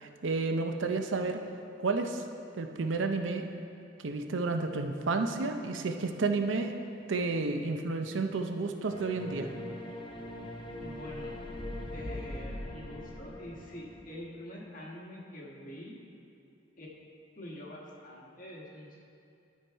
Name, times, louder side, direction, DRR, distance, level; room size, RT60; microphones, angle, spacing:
voice 1, 0.0-1.4 1.8-2.2 2.5-3.5 4.0-6.8 7.1-9.5, right 3 dB, 80° right, 6 dB, 0.6 m, -31 dB
sound 1, 8.9-14.0, left 1 dB, 25° left, 0.5 m, -41 dB
voice 2, 10.8-11.3 11.9-16.0 16.8-16.9 17.4-19.0, left 1 dB, 45° left, -3 dB, 1.3 m, -45 dB
12.0 x 4.6 x 4.6 m, 2.6 s
head